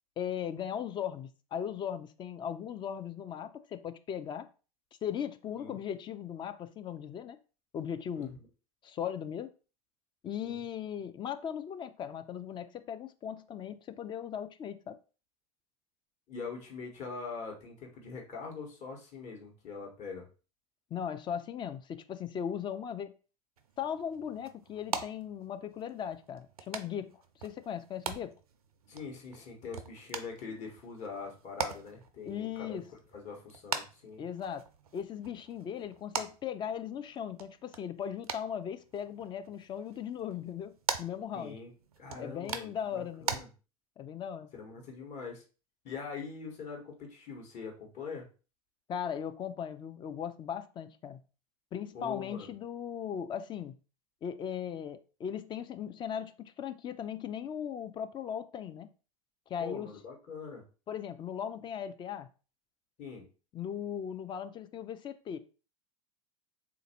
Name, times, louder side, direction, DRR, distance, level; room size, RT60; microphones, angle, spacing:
voice 1, 0.2-4.5 5.0-7.4 7.7-8.3 8.8-9.5 10.2-15.0 20.9-23.1 23.8-28.3 32.3-32.9 34.2-34.7 34.9-40.7 41.0-41.6 42.2-43.4 44.0-44.5 48.9-51.2 51.7-53.7 54.2-58.9 59.5-59.9 60.9-62.3 63.5-65.4, left 8 dB, 25° left, 0.3 m, -38 dB
voice 2, 16.3-20.3 28.9-32.8 33.1-34.3 41.3-41.7 42.0-43.5 44.5-45.4 45.8-48.3 51.9-52.5 59.6-60.6 63.0-63.2, left 5 dB, 40° left, 1.2 m, -43 dB
sound 1, 23.6-43.4, right 6 dB, 85° right, 0.4 m, -43 dB
3.4 x 2.5 x 2.8 m
hypercardioid pair, 90°, 19 cm